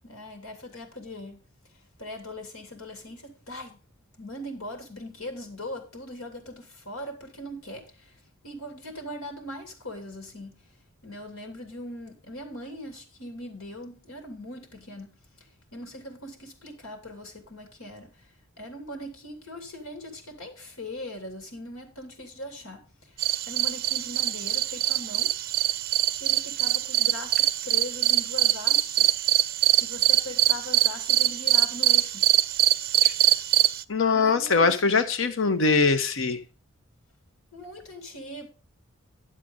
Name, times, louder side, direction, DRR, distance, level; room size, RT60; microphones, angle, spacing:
voice 1, 0.0-1.4 2.0-3.8 4.2-8.1 8.4-10.7 11.0-15.1 15.7-18.2 18.6-23.1 23.5-25.3 26.2-29.2 29.8-32.3 34.1-35.0 37.5-38.5, left 1 dB, 85° left, 2.7 m, -40 dB
sound 1, 23.2-33.8, right 13 dB, 45° right, 0.5 m, -23 dB
voice 2, 33.9-36.4, left 4 dB, 65° left, 1.1 m, -22 dB
11.0 x 7.6 x 3.9 m
head